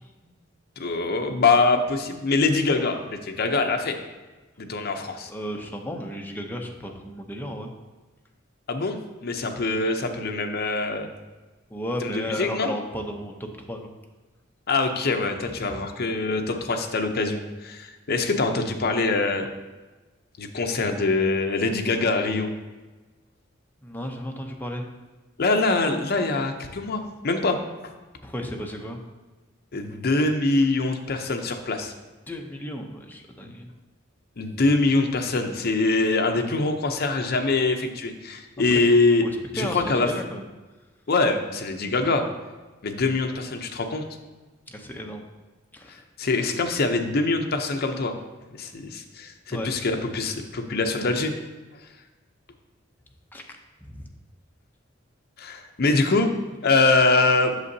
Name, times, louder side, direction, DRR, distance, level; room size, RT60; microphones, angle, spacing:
voice 1, 0.8-4.0 4.6-5.3 8.7-11.1 12.0-12.7 14.7-19.5 20.4-22.5 25.4-27.6 29.7-31.9 34.4-39.3 39.5-40.1 41.1-42.2 42.8-44.0 46.2-48.2 48.6-51.3 55.4-56.3 56.6-57.5, left 3 dB, 50° left, 5 dB, 0.6 m, -24 dB
voice 2, 5.3-7.7 11.7-13.9 15.7-15.8 23.8-24.8 28.2-29.0 32.3-33.7 39.2-39.3 39.6-40.4 44.7-45.2 45.7-46.0 49.5-49.7 53.3-53.4 53.9-54.1, equal, 10° left, 2 dB, 0.6 m, -33 dB
8.1 x 6.6 x 2.7 m, 1.2 s
head